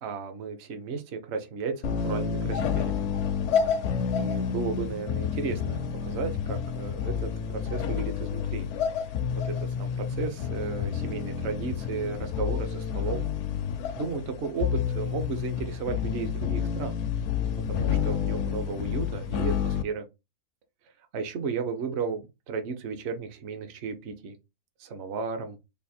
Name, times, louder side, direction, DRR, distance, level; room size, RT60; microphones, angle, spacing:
voice 1, 0.0-3.1 4.1-8.7 9.4-13.3 14.0-17.0 17.7-20.1 21.1-24.4 24.8-25.6, right 5 dB, 55° right, 6 dB, 0.8 m, -34 dB
sound 1, 1.8-19.8, left 7 dB, 70° left, 0.7 m, -29 dB
3.5 x 2.5 x 4.1 m, 0.25 s
omnidirectional pair, 1.6 m